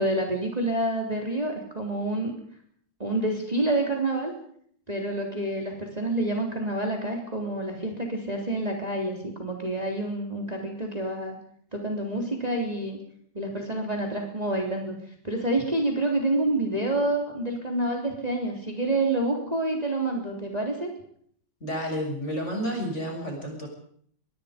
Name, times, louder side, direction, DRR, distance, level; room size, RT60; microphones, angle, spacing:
voice 1, 0.0-2.4 3.0-4.3 4.9-11.4 11.7-13.0 13.3-14.9 15.2-20.9, right 2 dB, 20° right, 1 dB, 3.6 m, -28 dB
voice 2, 21.6-23.7, equal, 35° left, 2 dB, 7.0 m, -30 dB
23.5 x 22.5 x 5.2 m, 0.62 s
omnidirectional pair, 2.1 m